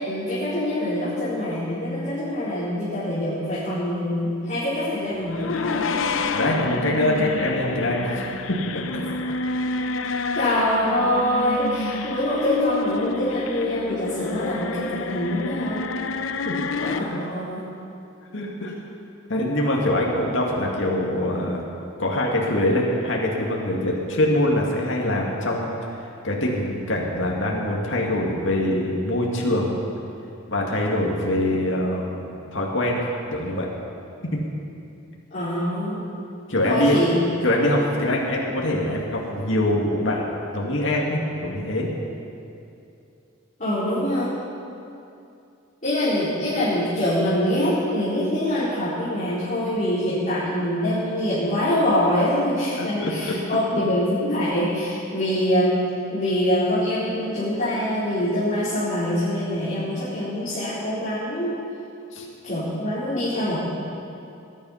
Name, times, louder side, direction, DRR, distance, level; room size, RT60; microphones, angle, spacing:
voice 1, 0.0-6.2 10.3-16.0 16.8-17.6 35.3-36.0 36.6-37.1 43.6-44.3 45.8-55.8 56.1-61.5 62.4-63.6, left 1 dB, 40° left, -13 dB, 4.4 m, -24 dB
sound 1, 5.2-17.0, left 4 dB, 90° left, 0.7 m, -29 dB
voice 2, 6.3-9.0 16.5-16.7 17.0-17.2 18.3-18.7 19.3-21.6 22.0-25.7 26.2-29.8 30.5-33.0 33.3-33.7 34.3-34.4 36.5-37.0 37.4-40.3 40.5-41.9 52.8-53.4 62.1-62.3, left 1 dB, 70° left, -2 dB, 2.2 m, -24 dB
19.5 x 10.5 x 5.7 m, 2.6 s
head